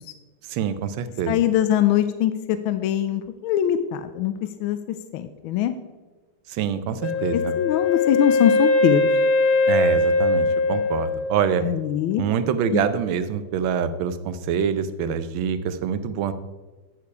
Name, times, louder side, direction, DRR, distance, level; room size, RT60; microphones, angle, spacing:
voice 1, 0.5-1.4 6.5-7.5 9.7-11.6 12.2-16.3, right 7 dB, 75° right, 12 dB, 1.4 m, -25 dB
voice 2, 1.3-4.3 4.6-5.7 7.3-9.1 11.6-12.3 12.7-12.8, left 11 dB, 75° left, 10 dB, 1.3 m, -22 dB
Wind instrument woodwind instrument, 7.0-11.9, left 2 dB, 55° left, 1.2 m, -21 dB
9.6 x 6.8 x 4.7 m, 1.2 s
omnidirectional pair, 2.3 m